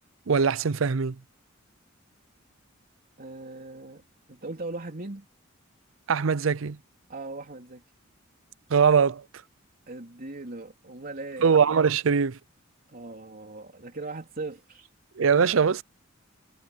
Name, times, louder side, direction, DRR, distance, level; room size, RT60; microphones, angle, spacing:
voice 1, 0.3-1.2 6.1-6.8 8.7-9.2 11.4-12.4 15.2-15.8, right 6 dB, 75° right, 0.6 m, -22 dB
voice 2, 3.2-5.3 7.1-7.8 9.9-11.5 12.9-14.9, right 2 dB, 45° right, 3.6 m, -39 dB
head